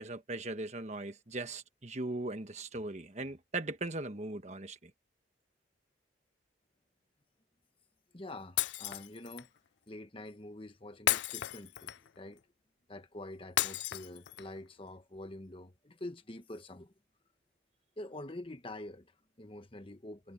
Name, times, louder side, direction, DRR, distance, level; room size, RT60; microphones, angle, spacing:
voice 1, 0.0-4.9, right 2 dB, 40° right, 1.4 m, -39 dB
voice 2, 8.1-9.5 9.9-12.4 12.9-16.9 18.0-20.3, left 1 dB, 30° left, 1.2 m, -46 dB
Shatter, 8.6-9.5 11.1-12.2 13.6-14.6, left 13 dB, 70° left, 0.4 m, -33 dB
head